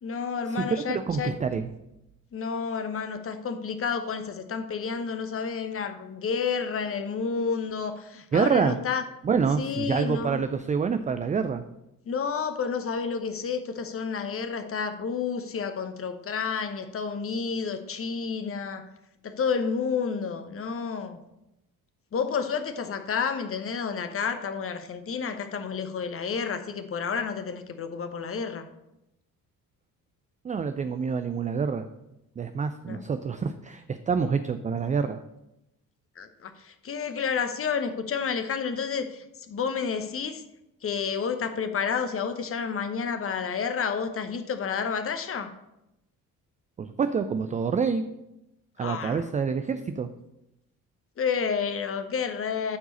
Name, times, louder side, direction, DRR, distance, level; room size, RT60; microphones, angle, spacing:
voice 1, 0.0-1.4 2.3-9.0 9.6-10.4 12.1-18.9 19.2-21.2 22.1-28.7 32.9-33.1 36.2-40.4 40.8-45.5 48.8-49.2 51.2-52.8, left 6 dB, 30° left, 9 dB, 0.9 m, -30 dB
voice 2, 0.6-1.7 8.3-8.8 9.2-11.6 30.4-31.9 32.4-35.2 46.8-48.0 48.8-50.1, right 6 dB, 20° right, 9 dB, 0.4 m, -27 dB
12.0 x 4.7 x 4.1 m, 0.89 s
hypercardioid pair, 50°, 44 cm